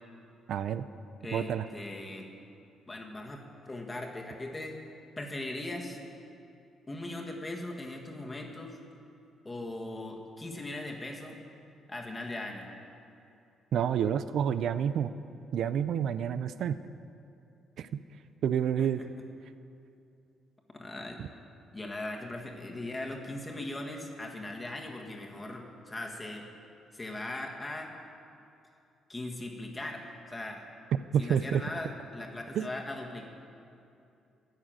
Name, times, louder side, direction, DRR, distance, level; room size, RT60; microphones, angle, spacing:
voice 1, 0.5-0.8 1.3-1.7 13.7-15.1 15.5-16.8 17.8-18.0 18.4-19.0 21.2-21.3 31.1-31.6 32.6-32.7, right 8 dB, 70° right, 13 dB, 0.3 m, -29 dB
voice 2, 1.2-2.3 2.9-4.8 5.2-6.0 6.9-8.8 9.4-11.4 11.9-12.7 18.8-18.9 20.7-21.2 21.7-26.4 26.9-27.9 29.1-30.6 31.2-33.3, left 2 dB, 20° left, 1 dB, 1.6 m, -39 dB
11.0 x 6.4 x 9.0 m, 2.6 s
cardioid pair, 90°, 0 cm